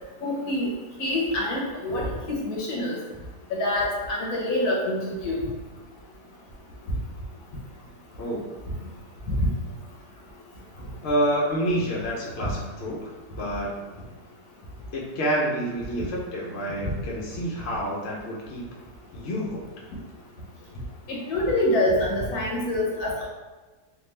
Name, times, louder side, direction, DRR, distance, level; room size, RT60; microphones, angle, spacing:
voice 1, 0.2-0.7 1.0-3.0 3.5-5.4 9.3-9.5 21.1-23.3, left 1 dB, 75° left, -3 dB, 1.3 m, -26 dB
voice 2, 11.0-14.1 14.9-18.6 19.1-19.6, equal, 55° left, -3 dB, 0.8 m, -28 dB
3.4 x 2.4 x 3.2 m, 1.2 s
omnidirectional pair, 1.7 m